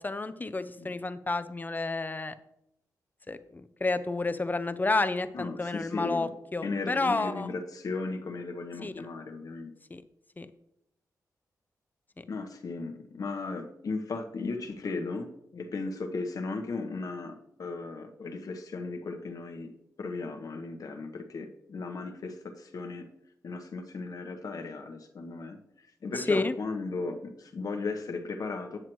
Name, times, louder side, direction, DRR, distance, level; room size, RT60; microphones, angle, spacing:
voice 1, 0.0-2.3 3.3-7.5 8.8-9.0 9.9-10.0 10.4-10.5 12.2-12.3 26.2-26.5, left 3 dB, 25° left, 11 dB, 0.5 m, -30 dB
voice 2, 5.3-6.3 6.6-9.7 12.3-19.7 20.0-23.1 23.4-28.8, left 3 dB, 65° left, 5 dB, 1.0 m, -36 dB
9.1 x 7.5 x 3.1 m, 0.79 s
cardioid pair, 70°, 7 cm